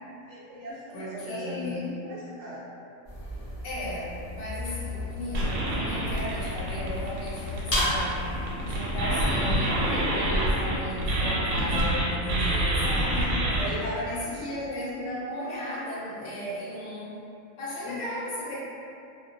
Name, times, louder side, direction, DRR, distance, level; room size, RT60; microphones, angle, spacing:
voice 1, 0.3-2.6 12.9-14.6 17.8-18.2, left 2 dB, 65° right, -6 dB, 0.8 m, -38 dB
voice 2, 0.9-1.9 3.6-8.3 8.6-13.3 13.6-17.2 17.6-18.6, equal, 65° left, -8 dB, 1.0 m, -35 dB
sound 1, 3.0-10.1, left 1 dB, 45° left, 0.4 m, -34 dB
sound 2, 5.3-12.0 12.3-13.6, right 1 dB, 90° right, 1.0 m, -26 dB
2.3 x 2.1 x 2.5 m, 2.6 s
omnidirectional pair, 1.4 m